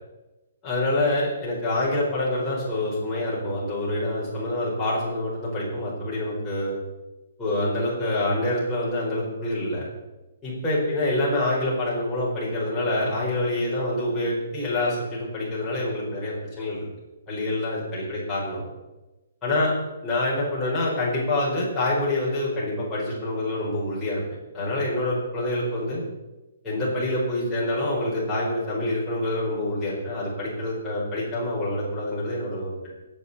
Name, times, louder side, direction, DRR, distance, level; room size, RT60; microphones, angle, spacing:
voice 1, 0.6-6.7 7.4-9.8 10.4-16.9 17.3-18.6 19.4-19.7 20.0-24.2 24.5-26.0 26.6-33.0, left 1 dB, 10° left, -8 dB, 4.6 m, -26 dB
25.0 x 9.0 x 4.2 m, 1.1 s
hypercardioid pair, 180°, 0 cm